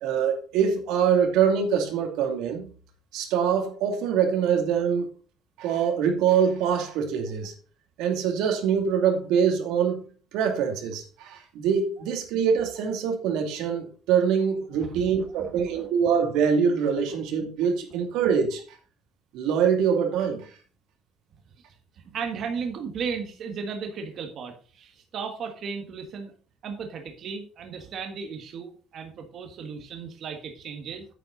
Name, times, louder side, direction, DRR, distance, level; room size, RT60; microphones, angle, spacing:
voice 1, 0.0-2.7 3.1-5.1 5.6-7.5 8.0-10.0 10.3-18.6 19.3-20.5, right 7 dB, 85° right, 2.5 m, -24 dB
voice 2, 14.8-15.9 17.9-18.0 21.6-21.7 21.9-26.3 26.6-31.0, right 6 dB, 40° right, 1.5 m, -35 dB
9.1 x 9.1 x 4.0 m
cardioid pair, 180°, 0 cm